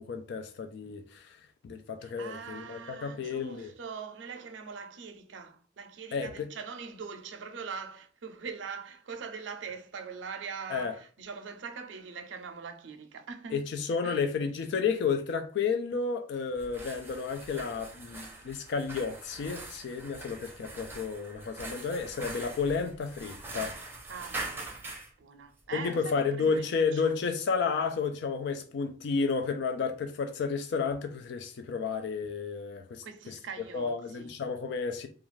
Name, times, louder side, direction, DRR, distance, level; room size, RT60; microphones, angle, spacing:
voice 1, 0.0-1.4 1.6-3.7 6.1-6.3 10.7-10.9 13.5-23.7 25.7-33.3 33.7-35.1, left 5 dB, 65° left, 0.3 m, -31 dB
voice 2, 2.0-13.7 14.0-14.2 24.1-24.8 25.2-27.1 33.0-34.3, right 5 dB, 75° right, 0.5 m, -42 dB
sound 1, 16.5-25.1, right 2 dB, 10° right, 0.6 m, -43 dB
2.4 x 2.2 x 3.1 m
head